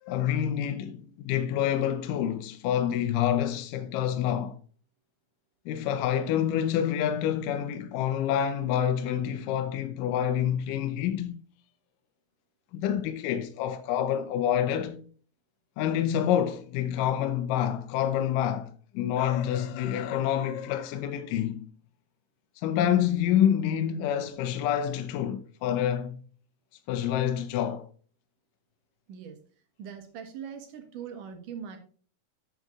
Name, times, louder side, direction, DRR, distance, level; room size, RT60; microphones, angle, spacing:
voice 1, 0.0-4.6 5.7-11.4 12.7-15.1 15.8-21.7 22.6-26.2 26.9-27.9, left 10 dB, 80° left, 2.4 m, -27 dB
voice 2, 29.8-31.8, right 7 dB, 75° right, 3.0 m, -41 dB
8.1 x 7.7 x 3.6 m
omnidirectional pair, 3.8 m